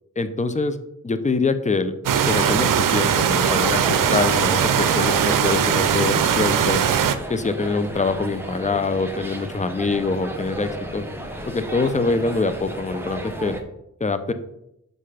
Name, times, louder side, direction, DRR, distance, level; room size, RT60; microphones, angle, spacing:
voice 1, 0.2-0.8 1.0-1.9 2.3-6.8 7.3-11.1 11.5-13.5 14.0-14.3, left 3 dB, 25° left, 11 dB, 0.7 m, -24 dB
sound 1, 2.1-7.2, right 8 dB, 80° right, 0.6 m, -20 dB
sound 2, 3.4-13.6, right 1 dB, 5° right, 1.2 m, -34 dB
5.8 x 5.4 x 5.0 m, 0.82 s
cardioid pair, 55°, 32 cm